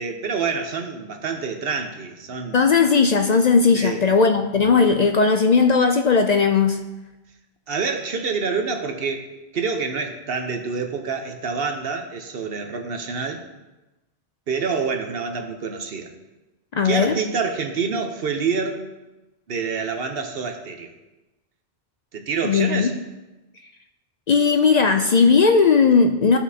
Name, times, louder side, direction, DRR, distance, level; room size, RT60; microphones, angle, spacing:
voice 1, 0.0-2.7 3.7-4.1 7.7-13.4 14.5-16.1 16.8-18.8 19.5-20.9 22.1-23.0, right 5 dB, 70° right, 5 dB, 1.0 m, -27 dB
voice 2, 2.5-6.8 16.7-17.1 22.4-22.9 24.3-26.4, left 5 dB, 55° left, 5 dB, 0.5 m, -17 dB
14.5 x 5.7 x 2.8 m, 1.0 s
omnidirectional pair, 1.0 m